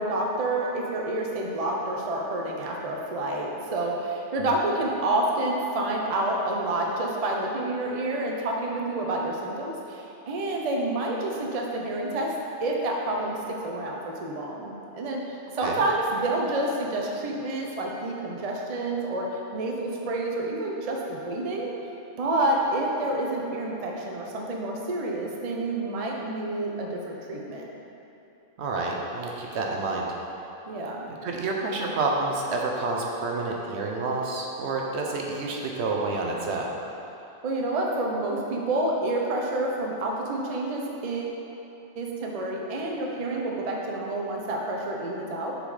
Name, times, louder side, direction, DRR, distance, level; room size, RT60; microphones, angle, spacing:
voice 1, 0.0-12.3 12.6-19.3 19.5-21.7 22.2-27.6 30.7-31.1 37.4-41.4 42.0-45.5, right 2 dB, 40° right, -1 dB, 0.6 m, -28 dB
voice 2, 28.6-30.1 31.2-36.7, right 3 dB, 70° right, -1 dB, 1.0 m, -29 dB
6.6 x 4.0 x 4.8 m, 3.0 s
omnidirectional pair, 1.2 m